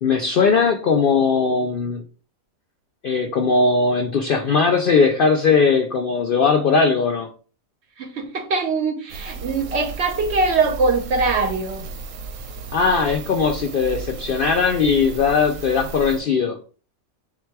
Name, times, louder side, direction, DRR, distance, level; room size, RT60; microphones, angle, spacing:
voice 1, 0.0-2.0 3.0-7.3 12.7-16.6, left 5 dB, 70° left, 3 dB, 0.5 m, -19 dB
voice 2, 8.0-11.8, right 3 dB, 60° right, 5 dB, 0.7 m, -22 dB
sound 1, 9.1-16.2, right 4 dB, 85° right, 1.1 m, -34 dB
3.9 x 2.2 x 4.5 m, 0.39 s
omnidirectional pair, 1.5 m